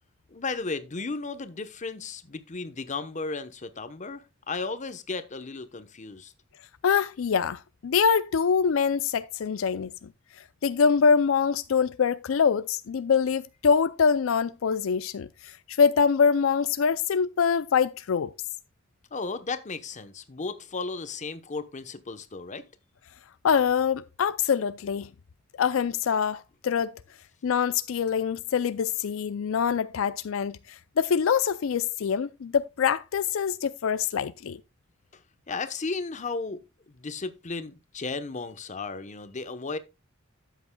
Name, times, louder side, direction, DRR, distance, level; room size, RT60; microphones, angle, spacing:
voice 1, 0.3-6.3 19.1-22.6 35.1-35.2 35.5-36.6 36.9-39.8, left 4 dB, 40° left, 0.9 m, -34 dB
voice 2, 6.8-10.1 10.6-18.3 23.4-25.1 25.6-26.9 27.4-34.6, left 6 dB, 80° left, 0.4 m, -24 dB
12.5 x 8.0 x 2.2 m
head